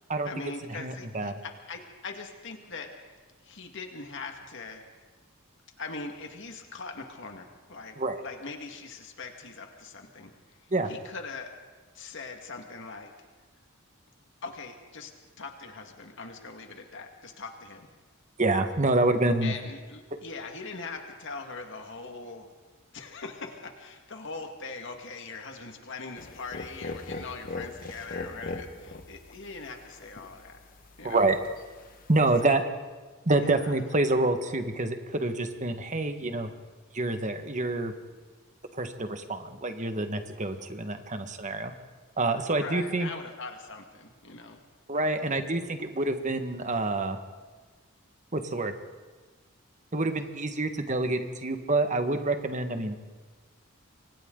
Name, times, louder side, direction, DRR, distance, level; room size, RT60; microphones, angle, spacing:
voice 1, 0.2-4.8 5.8-8.0 8.2-11.5 11.9-13.1 14.4-15.1 15.4-17.9 19.4-22.5 22.9-30.6 31.0-31.3 32.4-32.6 33.4-33.7 42.4-44.6, left 4 dB, 60° left, 4 dB, 1.9 m, -41 dB
voice 2, 0.8-1.4 8.0-8.2 10.7-10.9 18.4-19.5 31.0-31.4 32.1-32.6 33.3-36.5 36.9-37.9 38.8-41.7 42.2-43.1 44.9-47.2 48.3-48.8 49.9-53.1, right 2 dB, 35° right, 7 dB, 1.6 m, -27 dB
sound 1, 26.2-32.4, left 2 dB, 40° left, 1.5 m, -41 dB
29.0 x 24.5 x 3.9 m, 1.4 s
head